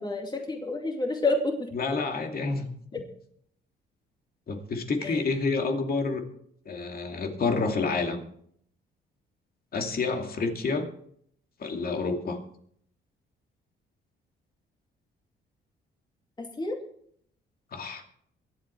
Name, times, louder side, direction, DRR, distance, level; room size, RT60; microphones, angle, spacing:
voice 1, 0.0-1.7 5.0-5.2 16.4-16.8, left 2 dB, 20° left, 3 dB, 2.4 m, -29 dB
voice 2, 1.7-3.1 4.5-6.2 6.7-8.2 9.7-10.9 11.6-12.4 17.7-18.0, left 4 dB, 50° left, 4 dB, 2.5 m, -29 dB
23.0 x 8.5 x 4.5 m, 0.66 s
cardioid pair, 90°, 20 cm